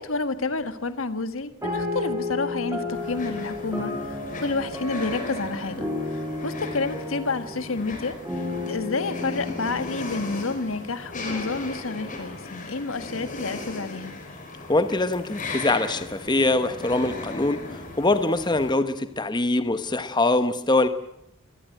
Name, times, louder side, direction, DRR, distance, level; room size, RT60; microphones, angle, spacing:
voice 1, 0.0-8.2 8.7-14.1, left 3 dB, 70° left, 11 dB, 1.5 m, -29 dB
sound 1, 1.6-11.4, left 2 dB, 15° right, 6.9 m, -33 dB
sound 2, 2.9-18.7, left 2 dB, 40° left, 5.0 m, -37 dB
voice 2, 14.7-20.9, left 2 dB, 20° left, 11 dB, 1.0 m, -23 dB
23.5 x 18.5 x 9.0 m, 0.80 s
head